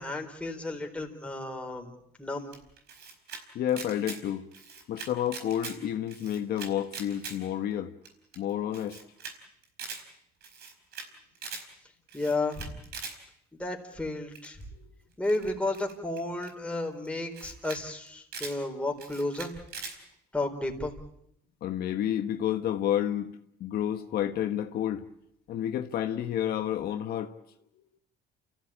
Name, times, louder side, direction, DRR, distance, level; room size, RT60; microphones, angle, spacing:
voice 1, 0.0-1.9 2.2-2.5 12.1-12.8 13.6-14.6 15.2-19.5 20.3-20.9, left 2 dB, 5° left, 4.2 m, -32 dB
Camera, 2.5-3.4 3.7-4.2 4.5-5.8 6.1-7.4 7.7-7.8 8.0-8.1 8.3-8.4 8.7-9.3 9.6-10.0 10.4-11.1 11.3-11.6 12.1-13.1 14.3-14.6 15.2-16.5 17.0-17.1 17.3-17.8 18.1-18.6 19.0-19.9, right 5 dB, 70° right, 4.8 m, -41 dB
voice 2, 3.5-4.4 4.9-7.9 8.4-9.0 21.6-23.3 23.6-25.0 25.5-27.3, left 10 dB, 65° left, 1.3 m, -30 dB
29.5 x 15.0 x 8.7 m
cardioid pair, 110°, 17 cm